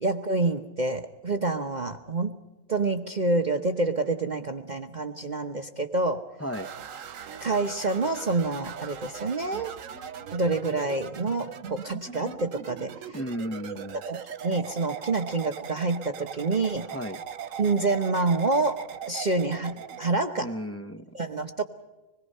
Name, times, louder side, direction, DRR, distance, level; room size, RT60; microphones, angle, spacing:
voice 1, 0.0-2.3 2.7-6.2 7.4-9.7 10.3-12.9 14.1-16.9 17.6-20.5 21.1-21.6, right 3 dB, 35° right, 5 dB, 1.1 m, -27 dB
sound 1, 6.5-20.1, right 7 dB, 80° right, 1.4 m, -40 dB
voice 2, 13.1-14.0 16.8-17.2 20.4-21.1, equal, 15° left, 8 dB, 0.7 m, -34 dB
26.0 x 21.0 x 5.5 m, 1.1 s
omnidirectional pair, 1.3 m